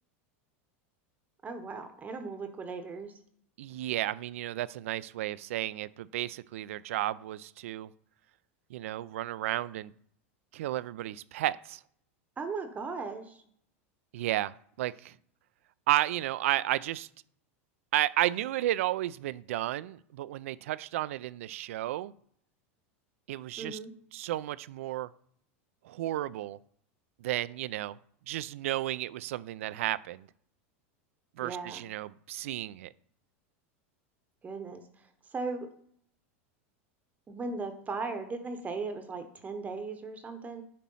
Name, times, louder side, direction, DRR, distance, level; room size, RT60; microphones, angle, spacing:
voice 1, 1.4-3.2 12.4-13.4 23.6-23.9 31.4-31.8 34.4-35.7 37.3-40.6, right 4 dB, 20° right, 0.8 m, -37 dB
voice 2, 3.6-7.9 8.7-9.9 10.5-11.8 14.1-15.1 15.9-17.1 17.9-22.1 23.3-23.8 24.1-25.1 25.8-26.6 27.2-28.0 28.3-30.3 31.4-32.9, right 14 dB, 80° right, 0.3 m, -32 dB
8.5 x 3.1 x 5.4 m
supercardioid pair, 115°, 7 cm